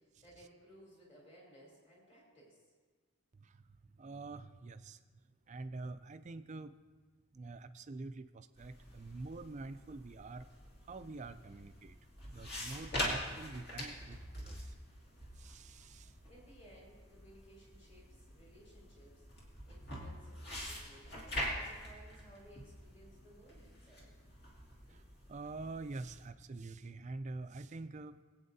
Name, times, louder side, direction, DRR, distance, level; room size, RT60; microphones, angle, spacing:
voice 1, 0.0-2.7 16.3-24.1, equal, 25° left, -4 dB, 3.4 m, -60 dB
voice 2, 4.0-5.0 5.5-6.7 7.3-10.5 10.9-12.0 12.3-14.2 14.4-14.7 15.4-16.1 24.9-25.0 25.3-28.2, right 3 dB, 30° right, 11 dB, 0.4 m, -46 dB
sound 1, 8.6-26.3, left 1 dB, 45° left, 2.3 m, -45 dB
21.5 x 8.6 x 2.7 m, 1.4 s
head